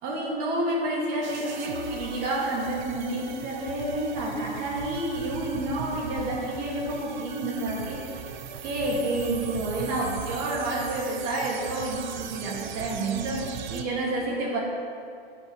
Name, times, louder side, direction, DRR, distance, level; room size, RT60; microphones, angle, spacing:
voice 1, 0.0-8.1 8.6-14.6, right 1 dB, 30° right, -2 dB, 2.3 m, -29 dB
sound 1, 1.2-13.8, right 7 dB, 45° right, 0.8 m, -38 dB
15.5 x 9.6 x 3.3 m, 2.6 s
hypercardioid pair, 155°, 31 cm